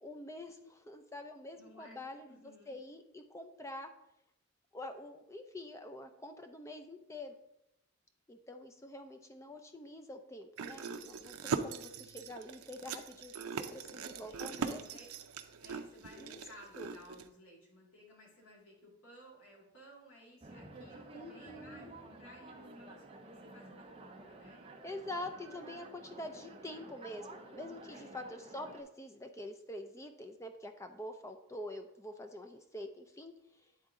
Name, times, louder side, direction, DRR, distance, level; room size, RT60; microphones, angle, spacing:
voice 1, 0.0-3.9 4.7-7.3 8.3-15.0 16.2-16.4 16.8-16.9 21.1-21.9 24.8-33.3, left 1 dB, 15° left, 6 dB, 0.4 m, -46 dB
voice 2, 1.5-2.8 14.2-15.1 15.3-24.6 27.9-28.2, equal, 75° left, -3 dB, 2.3 m, -58 dB
sound 1, 10.6-17.3, right 5 dB, 80° right, 0.5 m, -41 dB
sound 2, 20.4-28.8, right 2 dB, 25° right, 0.6 m, -52 dB
9.7 x 3.7 x 3.7 m, 0.83 s
head